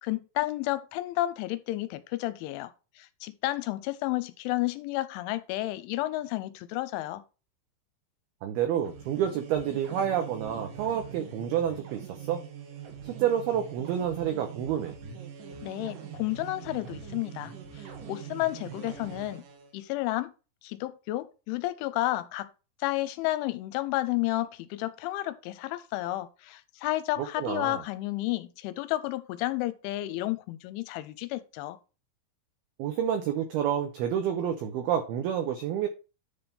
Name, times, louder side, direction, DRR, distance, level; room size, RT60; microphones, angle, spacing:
voice 1, 0.0-2.7 3.0-7.2 15.6-19.4 19.7-20.3 20.6-22.5 22.8-31.8, left 17 dB, 85° left, 3.0 m, -31 dB
voice 2, 8.4-12.4 13.0-15.0 27.4-27.8 32.8-35.9, right 9 dB, 85° right, 2.2 m, -29 dB
sound 1, 8.7-19.7, right 7 dB, 65° right, 2.3 m, -43 dB
10.5 x 3.5 x 5.4 m
omnidirectional pair, 5.6 m